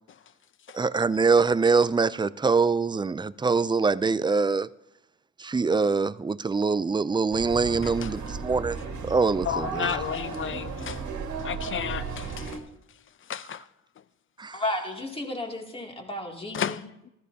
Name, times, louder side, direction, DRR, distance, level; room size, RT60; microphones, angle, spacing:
voice 1, 0.7-4.7 5.4-8.8 9.0-10.0 14.4-14.6, right 4 dB, 15° right, 0.4 m, -24 dB
sound 1, 7.3-12.6, right 5 dB, 70° right, 1.9 m, -35 dB
voice 2, 9.4-11.0 11.4-12.6 13.3-13.6 16.5-17.1, left 9 dB, 40° left, 0.6 m, -32 dB
voice 3, 14.5-16.8, left 1 dB, 20° left, 2.6 m, -33 dB
15.0 x 14.0 x 2.8 m
cardioid pair, 90°, 30 cm